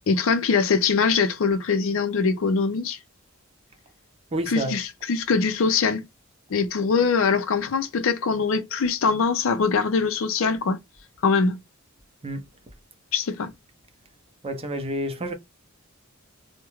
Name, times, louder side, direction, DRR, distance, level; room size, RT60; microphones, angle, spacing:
voice 1, 0.1-3.0 4.5-6.0 6.5-10.8 11.2-11.6 13.1-13.5, left 5 dB, 70° left, 0.5 m, -22 dB
voice 2, 4.3-4.7 12.2-12.4 14.4-15.3, right 1 dB, 30° right, 0.5 m, -29 dB
2.3 x 2.1 x 2.9 m
head